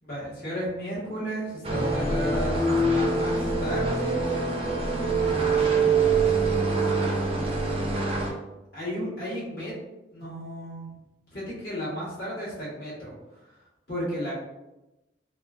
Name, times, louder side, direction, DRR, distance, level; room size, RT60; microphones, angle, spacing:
voice 1, 0.0-4.3 5.4-7.2 8.7-9.7 10.1-10.8 11.3-13.1 13.9-14.3, equal, 55° left, -8 dB, 1.3 m, -34 dB
sound 1, 1.6-8.3, right 3 dB, 30° right, 0.4 m, -24 dB
2.9 x 2.4 x 2.4 m, 0.98 s
head